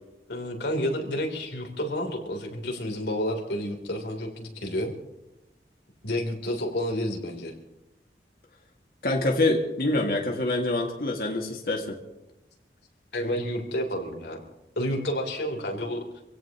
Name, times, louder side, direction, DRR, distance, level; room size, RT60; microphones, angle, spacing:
voice 1, 0.3-4.9 6.0-7.5 13.1-14.4 14.8-16.0, equal, 80° left, 2 dB, 3.5 m, -30 dB
voice 2, 9.0-11.9, left 2 dB, 55° left, -1 dB, 2.1 m, -25 dB
26.0 x 17.0 x 3.0 m, 0.98 s
head